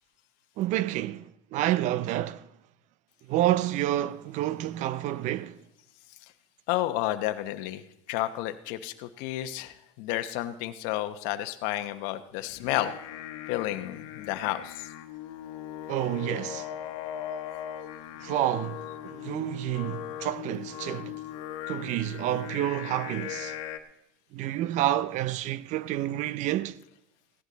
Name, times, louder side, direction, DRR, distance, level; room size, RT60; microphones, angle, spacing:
voice 1, 0.6-2.5 3.3-5.6 15.9-16.7 18.2-21.2 21.7-23.6 24.3-26.8, right 14 dB, 50° right, 0.5 m, -29 dB
voice 2, 6.7-7.8 8.1-12.9 13.5-14.9, left 14 dB, 65° left, 0.9 m, -31 dB
Singing, 12.5-23.8, left 11 dB, 80° left, 1.3 m, -39 dB
16.5 x 11.0 x 4.0 m
supercardioid pair, 105°, 16 cm